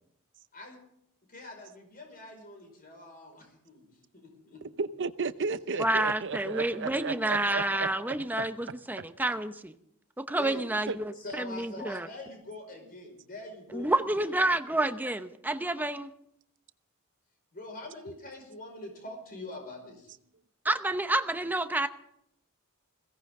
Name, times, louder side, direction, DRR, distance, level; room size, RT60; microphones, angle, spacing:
voice 1, 1.3-4.6 10.3-10.7 11.1-14.3 17.5-20.1, left 2 dB, 40° left, 5.2 m, -44 dB
voice 2, 4.8-7.9 10.9-11.0, right 4 dB, 60° right, 0.7 m, -33 dB
voice 3, 5.8-9.8 10.2-12.1 13.7-16.1 20.6-21.9, right 1 dB, 10° right, 0.8 m, -29 dB
21.5 x 17.0 x 3.7 m
head